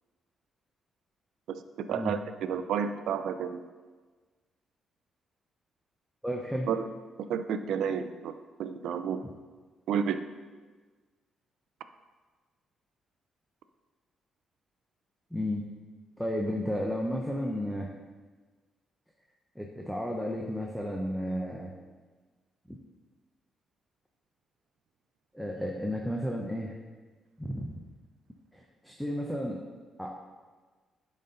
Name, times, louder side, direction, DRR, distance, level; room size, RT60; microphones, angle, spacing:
voice 1, 1.5-3.6 6.7-6.8 7.3-8.3 8.6-9.2 9.9-10.2, right 7 dB, 85° right, 10 dB, 0.4 m, -31 dB
voice 2, 6.2-6.7 15.3-15.6 16.2-17.9 19.6-21.7 22.7-22.8 25.3-26.7 27.4-27.8 28.5-29.6 30.0-30.3, equal, ahead, 0 dB, 0.6 m, -33 dB
10.5 x 4.1 x 3.9 m, 1.4 s
cardioid pair, 125°, 0 cm